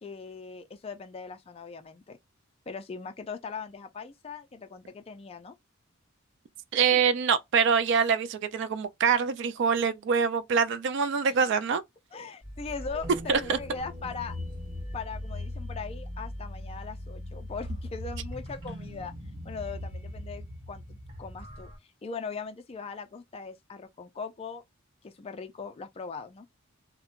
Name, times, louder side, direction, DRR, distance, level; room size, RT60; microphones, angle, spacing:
voice 1, 0.0-2.2 2.7-5.5 6.9-7.0 11.3-11.4 12.1-14.4 14.9-19.1 19.4-21.7 22.0-24.6 25.0-26.5, left 5 dB, 30° left, 0.3 m, -40 dB
voice 2, 6.7-11.8 13.3-13.6, right 6 dB, 60° right, 0.3 m, -25 dB
sound 1, 12.4-21.8, left 1 dB, 25° right, 1.2 m, -39 dB
2.9 x 2.1 x 2.4 m
head